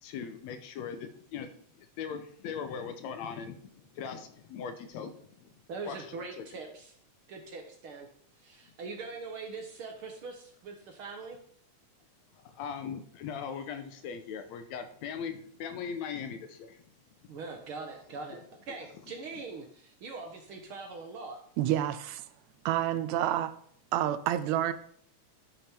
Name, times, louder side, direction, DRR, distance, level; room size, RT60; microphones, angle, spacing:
voice 1, 0.0-5.5 5.9-6.5 12.3-16.8 18.7-18.8, left 7 dB, 75° left, 1.9 m, -40 dB
voice 2, 5.7-6.9 7.3-8.1 8.4-11.4 17.3-21.4, right 4 dB, 60° right, 1.5 m, -42 dB
voice 3, 21.6-22.3 22.7-23.5 23.9-24.7, right 12 dB, 80° right, 1.8 m, -28 dB
11.0 x 5.2 x 4.3 m
omnidirectional pair, 3.3 m